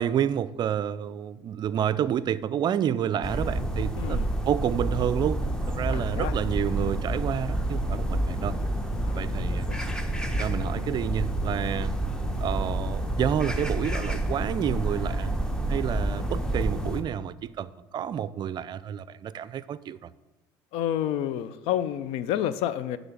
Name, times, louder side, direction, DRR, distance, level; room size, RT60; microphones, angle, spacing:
voice 1, 0.0-8.6 9.1-9.7 10.3-11.9 12.4-15.3 15.7-20.1, right 9 dB, 45° right, 17 dB, 0.4 m, -29 dB
sound 1, 3.2-17.0, right 1 dB, 5° left, 1.0 m, -29 dB
voice 2, 3.9-4.3 5.9-6.3 9.0-9.8 20.7-23.0, left 11 dB, 70° left, 15 dB, 0.5 m, -30 dB
10.0 x 4.1 x 7.2 m, 1.1 s
hypercardioid pair, 75°, 11 cm